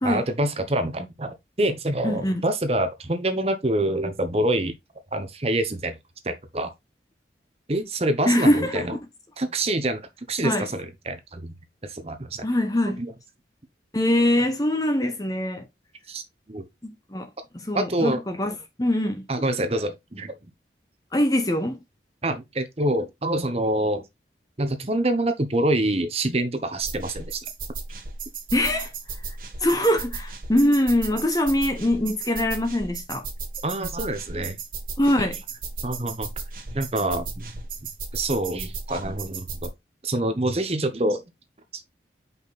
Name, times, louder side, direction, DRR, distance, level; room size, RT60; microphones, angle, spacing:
voice 1, 0.0-4.7 5.1-5.9 6.2-6.7 7.7-8.9 9.4-10.0 10.3-11.5 11.8-12.4 16.1-16.2 16.5-16.7 17.7-18.2 19.3-20.3 22.2-24.0 24.6-27.4 33.6-34.6 35.8-36.3 36.7-37.5 38.1-39.7 40.0-41.2, right 1 dB, 35° right, 0.9 m, -26 dB
voice 2, 2.0-2.5 8.3-8.9 10.4-10.7 12.4-13.0 13.9-15.7 16.8-17.3 17.5-19.3 21.1-21.8 28.5-28.9 29.6-33.3 35.0-35.4, left 1 dB, 20° left, 0.9 m, -23 dB
sound 1, 26.8-39.7, right 4 dB, 50° right, 1.6 m, -35 dB
5.4 x 4.3 x 4.0 m
head